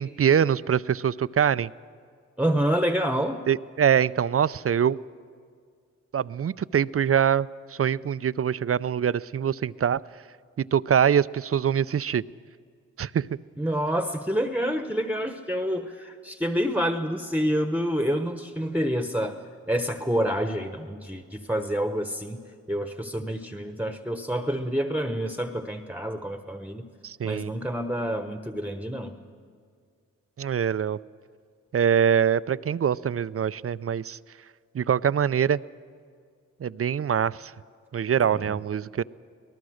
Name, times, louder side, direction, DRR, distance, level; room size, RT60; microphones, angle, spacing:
voice 1, 0.0-1.7 3.5-5.0 6.1-10.0 10.6-12.2 13.0-13.3 27.0-27.5 30.4-31.0 31.7-34.2 34.7-35.6 36.6-37.5 37.9-39.0, right 8 dB, 45° right, 17 dB, 0.5 m, -24 dB
voice 2, 2.4-3.4 13.6-19.4 19.7-22.4 22.7-26.9 27.2-29.1 38.2-38.4, equal, 5° right, 7 dB, 1.1 m, -28 dB
23.0 x 19.0 x 6.4 m, 2.1 s
cardioid pair, 45°, 32 cm